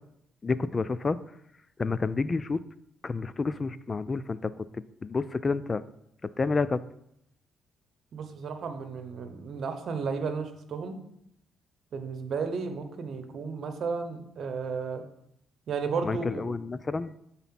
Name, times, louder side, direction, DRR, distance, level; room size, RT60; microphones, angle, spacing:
voice 1, 0.4-1.2 1.8-2.6 3.0-4.5 5.0-5.8 6.4-6.8 16.0-17.1, left 4 dB, 30° left, 16 dB, 0.3 m, -29 dB
voice 2, 8.1-11.0 11.9-15.0 15.7-16.4, right 5 dB, 60° right, 7 dB, 0.9 m, -33 dB
6.9 x 4.1 x 5.8 m, 0.77 s
cardioid pair, 90°, 0 cm